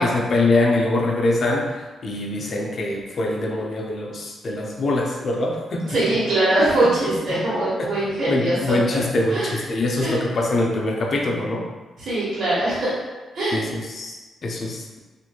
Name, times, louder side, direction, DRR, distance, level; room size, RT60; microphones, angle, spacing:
voice 1, 0.0-6.0 6.8-6.9 7.8-7.9 8.3-11.7 13.5-15.0, left 2 dB, 55° left, 0 dB, 0.5 m, -24 dB
voice 2, 5.9-9.0 9.3-9.6 10.0-10.2 12.0-12.9 13.3-13.6, right 1 dB, 70° right, -9 dB, 1.1 m, -22 dB
3.0 x 2.6 x 2.2 m, 1.3 s
supercardioid pair, 60°, 0 cm